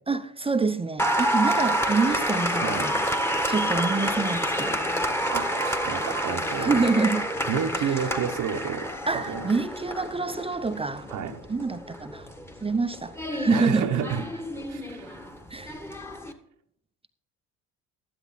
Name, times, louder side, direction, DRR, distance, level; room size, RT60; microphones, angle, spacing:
voice 1, 0.1-3.0 3.5-4.8 6.6-7.2 7.8-7.9 9.1-11.1 11.5-12.3 12.6-13.9 15.5-15.8, right 4 dB, 15° right, 0.8 m, -26 dB
Applause, 1.0-16.3, equal, 5° left, 1.5 m, -29 dB
voice 2, 2.6-2.9 5.3-6.8 7.5-9.4 11.1-11.4 13.5-14.2 14.7-15.1, right 8 dB, 55° right, 1.1 m, -30 dB
12.0 x 10.5 x 4.2 m
supercardioid pair, 70°, 37 cm